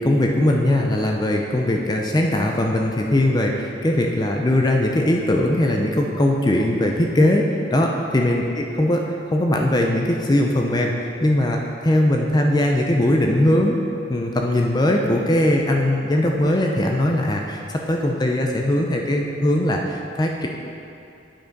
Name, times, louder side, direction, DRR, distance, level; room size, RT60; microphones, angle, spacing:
voice 1, 0.0-8.4 8.8-9.0 9.3-13.8 14.1-20.5, left 1 dB, 20° left, 1 dB, 0.5 m, -20 dB
8.7 x 4.9 x 5.2 m, 2.6 s
head